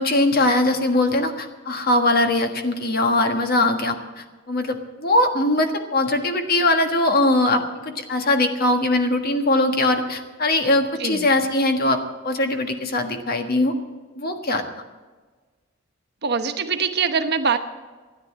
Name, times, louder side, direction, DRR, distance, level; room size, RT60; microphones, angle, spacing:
voice 1, 0.0-12.0 12.2-13.7 14.1-14.6, left 2 dB, 50° left, 6 dB, 1.5 m, -21 dB
voice 2, 16.2-17.6, right 5 dB, 55° right, 7 dB, 1.1 m, -23 dB
13.5 x 10.5 x 7.4 m, 1.4 s
head